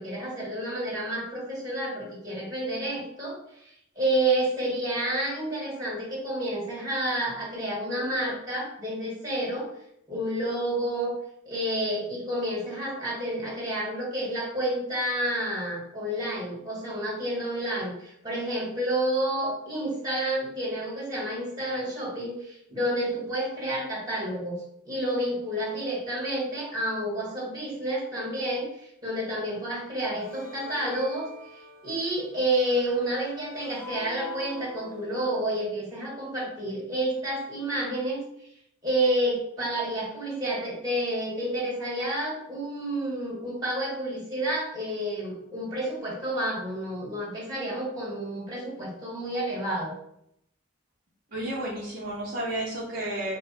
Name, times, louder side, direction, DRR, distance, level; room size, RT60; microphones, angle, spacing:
voice 1, 0.0-3.4 4.0-9.7 10.1-11.1 11.5-24.6 24.9-31.3 31.8-38.2 38.8-49.9, right 1 dB, 20° right, -4 dB, 1.8 m, -29 dB
sound 1, 30.2-35.4, left 1 dB, 45° left, 0.9 m, -45 dB
voice 2, 51.3-53.4, right 1 dB, 45° right, -5 dB, 0.8 m, -32 dB
4.9 x 2.2 x 4.3 m, 0.75 s
head